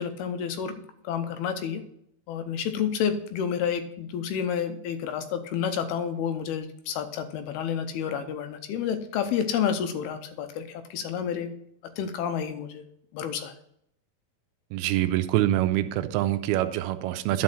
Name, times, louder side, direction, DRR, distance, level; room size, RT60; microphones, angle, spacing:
voice 1, 0.0-1.8 2.3-11.5 12.0-12.8 13.1-13.5, left 8 dB, 85° left, 9 dB, 2.7 m, -30 dB
voice 2, 14.7-17.4, right 14 dB, 85° right, 11 dB, 2.5 m, -25 dB
10.5 x 5.4 x 5.8 m, 0.73 s
omnidirectional pair, 4.5 m